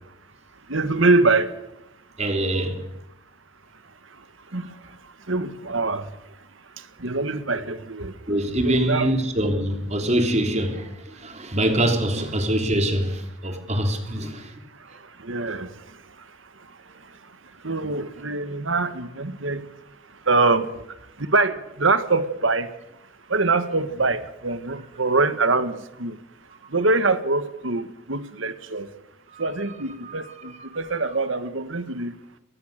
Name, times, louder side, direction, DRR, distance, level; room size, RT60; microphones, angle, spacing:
voice 1, 0.7-1.5 4.5-4.7 5.3-6.1 7.0-8.1 8.6-9.1 12.1-12.2 14.2-14.3 15.2-15.7 17.6-19.6 20.3-20.8 21.2-22.7 23.3-26.2 26.7-28.9 29.4-32.1, right 3 dB, 75° right, 1.8 m, -24 dB
voice 2, 2.2-2.9 8.3-14.6 17.3-17.4 29.3-29.5 30.0-30.7, right 1 dB, 35° right, 3.4 m, -24 dB
24.0 x 19.5 x 6.7 m
head